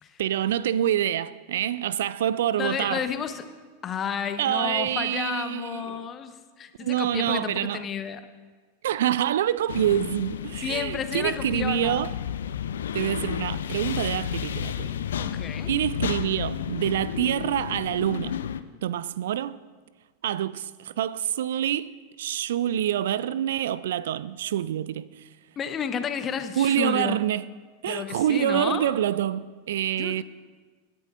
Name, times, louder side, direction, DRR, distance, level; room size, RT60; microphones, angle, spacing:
voice 1, 0.2-3.1 4.4-6.1 6.8-7.8 8.8-12.1 12.9-14.9 15.7-18.4 18.8-19.6 20.2-25.2 26.6-27.4 27.8-30.2, right 11 dB, 60° right, 0.3 m, -26 dB
voice 2, 2.6-3.5 3.8-8.3 10.6-12.0 15.2-15.7 25.6-27.2 27.9-29.0 30.0-30.2, left 7 dB, 25° left, 0.9 m, -32 dB
sound 1, 9.7-18.6, left 9 dB, 65° left, 0.5 m, -32 dB
25.5 x 10.5 x 2.5 m
figure-of-eight pair, 90°, 0 cm